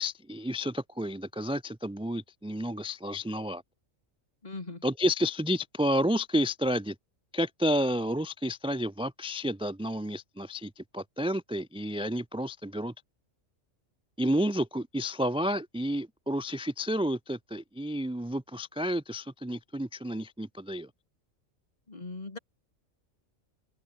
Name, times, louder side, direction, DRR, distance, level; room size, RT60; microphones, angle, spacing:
voice 1, 0.0-3.6 4.8-7.0 7.3-12.9 14.2-20.9, equal, 10° right, 0.4 m, -30 dB
voice 2, 4.4-4.8 21.9-22.4, left 3 dB, 30° left, 2.0 m, -39 dB
open air
omnidirectional pair, 1.3 m